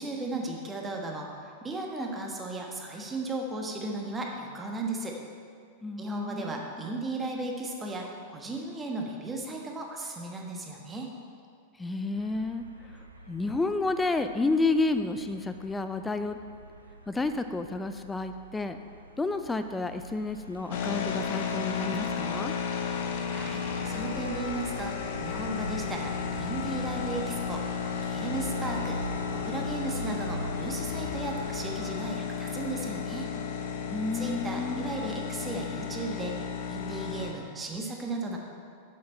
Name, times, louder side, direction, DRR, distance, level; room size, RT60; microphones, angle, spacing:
voice 1, 0.0-5.2 6.0-11.1 23.3-27.6 28.0-29.0 29.3-33.3 34.1-38.4, right 2 dB, 15° right, 0 dB, 1.3 m, -35 dB
voice 2, 5.8-6.6 11.8-12.6 13.3-16.4 17.1-18.8 19.2-22.5 33.9-34.8, left 3 dB, 10° left, 9 dB, 0.5 m, -30 dB
sound 1, 12.1-31.8, right 2 dB, 90° right, 0.6 m, -43 dB
sound 2, 20.7-37.3, left 6 dB, 55° left, 0.9 m, -33 dB
8.0 x 7.8 x 4.3 m, 2.2 s
figure-of-eight pair, 95°, 0 cm